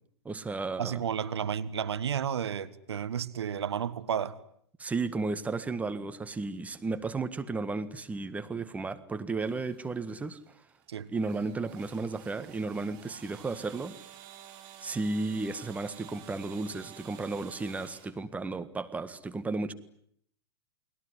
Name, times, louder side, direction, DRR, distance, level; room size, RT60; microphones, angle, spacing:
voice 1, 0.2-1.0 4.8-10.4 11.1-14.0 14.8-19.7, right 3 dB, 10° right, 1.6 m, -34 dB
voice 2, 0.8-4.4 10.9-11.1, right 8 dB, 70° right, 1.5 m, -32 dB
sound 1, 9.4-18.1, right 11 dB, 40° right, 5.2 m, -52 dB
29.5 x 21.0 x 9.7 m
figure-of-eight pair, 105°, 14 cm